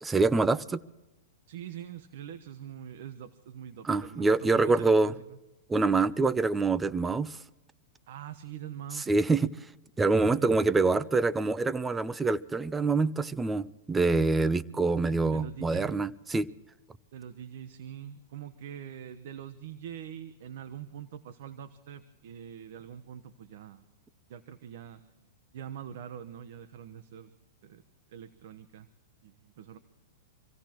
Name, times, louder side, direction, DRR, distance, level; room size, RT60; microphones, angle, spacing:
voice 1, 0.0-0.8 3.9-5.1 5.7-7.4 9.1-9.5 10.0-16.5, right 3 dB, 10° right, 0.6 m, -25 dB
voice 2, 1.5-5.4 8.1-9.1 10.2-10.6 15.1-16.0 17.1-23.8 24.3-25.1 25.5-27.3 27.6-27.8 28.1-28.9 29.2-29.8, right 9 dB, 65° right, 1.0 m, -44 dB
26.0 x 16.5 x 3.0 m
hypercardioid pair, 135°, 0 cm